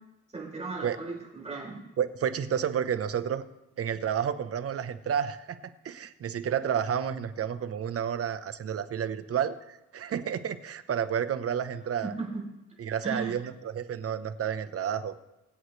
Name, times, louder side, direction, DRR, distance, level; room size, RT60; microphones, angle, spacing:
voice 1, 0.3-1.9 12.0-12.4 13.0-13.3, right 3 dB, 20° right, -3 dB, 5.4 m, -36 dB
voice 2, 2.0-3.4 3.8-5.6 5.8-12.1 12.8-15.1, right 8 dB, 50° right, 11 dB, 1.0 m, -30 dB
23.5 x 8.1 x 3.3 m, 0.94 s
cardioid pair, 90°, 30 cm